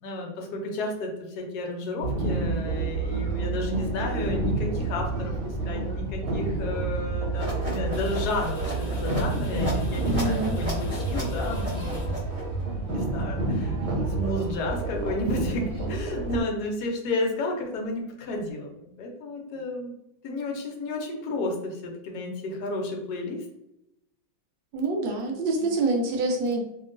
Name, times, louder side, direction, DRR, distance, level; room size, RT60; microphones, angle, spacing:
voice 1, 0.0-12.4 12.9-13.8 14.1-19.9 20.2-23.4 25.6-25.7, left 2 dB, 65° left, 1 dB, 1.0 m, -32 dB
sound 1, 2.0-16.4, right 3 dB, 55° right, 1.2 m, -29 dB
sound 2, 7.3-12.6, equal, 10° right, 0.8 m, -34 dB
sound 3, 7.7-12.8, left 1 dB, 80° left, 0.6 m, -37 dB
voice 2, 10.1-10.6 24.7-26.6, right 2 dB, 75° right, 1 dB, 1.2 m, -26 dB
2.9 x 2.8 x 2.5 m, 0.84 s
omnidirectional pair, 2.2 m